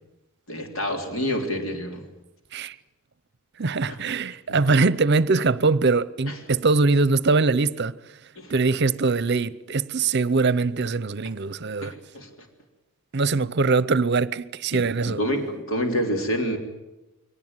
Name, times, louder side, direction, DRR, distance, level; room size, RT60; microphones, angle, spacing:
voice 1, 0.5-2.0 3.9-4.0 4.5-4.7 6.3-6.4 8.3-8.5 11.8-12.3 14.7-16.6, equal, 75° left, 3.4 m, -28 dB
voice 2, 3.6-7.9 8.5-11.9 13.1-15.2, right 3 dB, 55° right, 0.7 m, -22 dB
23.5 x 18.5 x 9.6 m
head